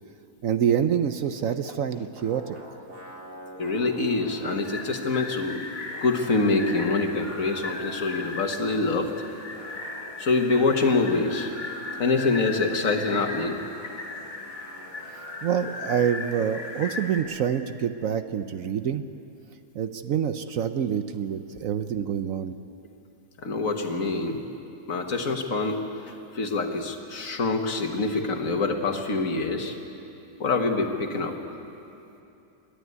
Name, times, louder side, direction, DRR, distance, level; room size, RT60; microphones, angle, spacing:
voice 1, 0.4-2.6 15.4-19.0 19.7-22.5, right 8 dB, 65° right, 10 dB, 1.0 m, -26 dB
sound 1, 2.1-5.4 5.7-9.0 9.5-17.5, equal, 85° right, 3.4 m, -47 dB
voice 2, 3.6-5.6 6.0-9.1 10.2-11.5 12.0-13.6 23.4-24.4 24.9-29.8 30.4-31.4, left 3 dB, 55° left, 4 dB, 1.8 m, -25 dB
sound 2, 4.6-17.2, left 3 dB, 40° left, 2.0 m, -37 dB
27.5 x 11.5 x 9.6 m, 2.8 s
omnidirectional pair, 1.7 m